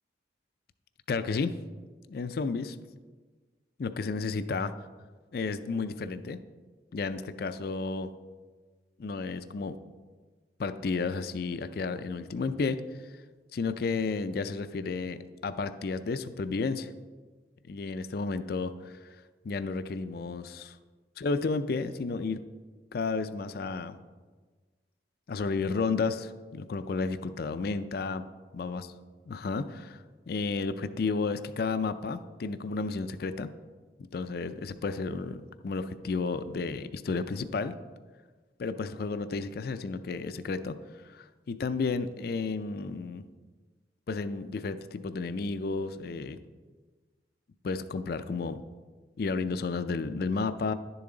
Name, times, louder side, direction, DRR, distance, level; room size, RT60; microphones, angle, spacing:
voice 1, 1.1-1.5 2.1-2.8 3.8-4.7 5.3-6.4 6.9-8.1 9.0-9.8 10.6-12.8 13.5-16.9 17.7-19.2 19.4-20.8 21.2-22.4 22.9-24.0 25.3-28.2 28.5-28.8 29.3-33.5 34.0-37.7 38.6-40.8 41.1-43.2 44.1-46.4 47.6-48.6 49.2-50.7, left 4 dB, 55° left, 11 dB, 0.4 m, -32 dB
11.0 x 7.0 x 3.8 m, 1.4 s
head